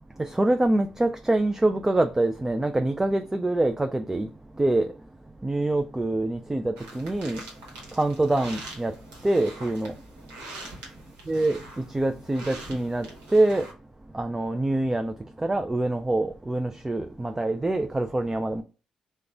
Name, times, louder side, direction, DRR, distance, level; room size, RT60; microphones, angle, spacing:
voice 1, 0.2-4.3 4.6-4.9 5.4-7.4 8.0-8.9 9.2-9.9 11.3-11.6 11.9-13.1 13.3-13.7 14.1-15.1 15.4-18.6, right 2 dB, 15° right, 0.4 m, -25 dB
sound 1, 6.8-13.7, right 2 dB, 75° right, 1.0 m, -44 dB
2.9 x 2.2 x 3.7 m
hypercardioid pair, 40°, 3 cm